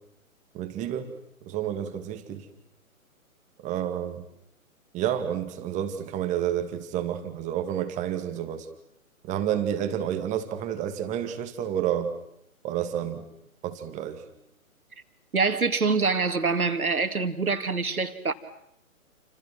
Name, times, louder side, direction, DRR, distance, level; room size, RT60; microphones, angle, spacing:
voice 1, 0.5-1.1 1.4-2.5 3.6-4.2 4.9-8.7 9.2-12.1 12.6-13.2 13.6-14.2, right 10 dB, 15° right, 8 dB, 2.2 m, -30 dB
voice 2, 15.3-18.3, right 4 dB, 80° right, 9 dB, 2.6 m, -25 dB
29.5 x 27.0 x 6.2 m, 0.76 s
figure-of-eight pair, 135°, 43 cm